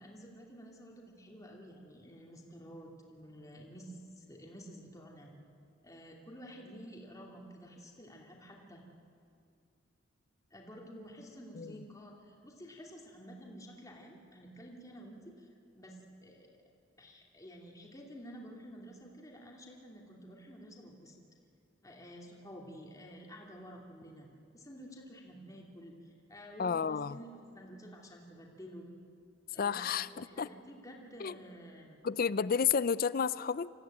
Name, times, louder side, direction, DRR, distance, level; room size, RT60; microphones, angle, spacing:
voice 1, 0.0-5.3 5.8-8.8 10.5-15.5 15.7-16.6 17.0-21.2 21.8-27.3 27.5-28.8 29.5-32.0, equal, 15° left, -1 dB, 2.6 m, -51 dB
voice 2, 26.6-27.2 29.6-30.5 31.2-31.4 32.0-33.7, left 6 dB, 45° left, 18 dB, 0.5 m, -31 dB
25.5 x 15.5 x 8.9 m, 2.4 s
head